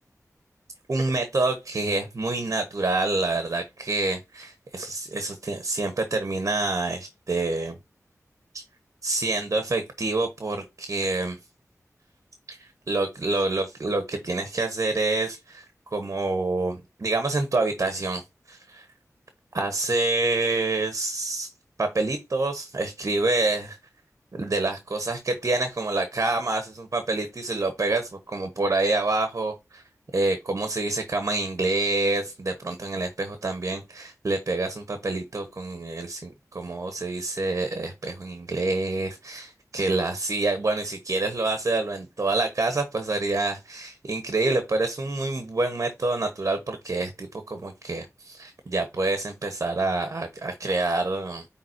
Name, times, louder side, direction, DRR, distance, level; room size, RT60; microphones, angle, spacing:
voice 1, 0.9-7.8 8.5-8.6 9.0-11.4 12.5-18.9 19.5-21.5 21.8-23.8 24.3-29.8 30.1-51.5, right 2 dB, 55° right, 1.2 m, -27 dB
9.4 x 3.6 x 2.8 m
wide cardioid pair, 65°, 6 cm